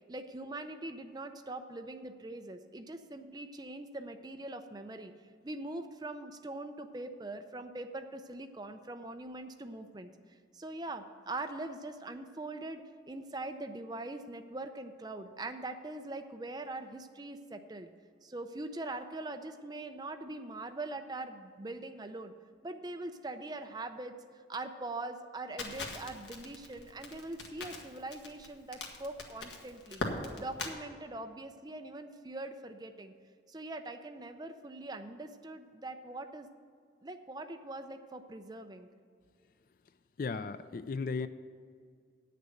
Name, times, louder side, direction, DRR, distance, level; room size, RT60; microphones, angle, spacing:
voice 1, 0.1-5.1 5.4-10.1 10.5-17.9 18.2-22.3 22.6-30.0 30.4-33.1 33.5-36.5 37.0-38.9, right 2 dB, 20° right, 7 dB, 0.5 m, -42 dB
Crackle, 25.6-30.7, left 3 dB, 80° left, 1.4 m, -41 dB
voice 2, 40.2-41.3, left 4 dB, 50° left, 12 dB, 0.4 m, -35 dB
9.1 x 6.7 x 7.7 m, 2.1 s
head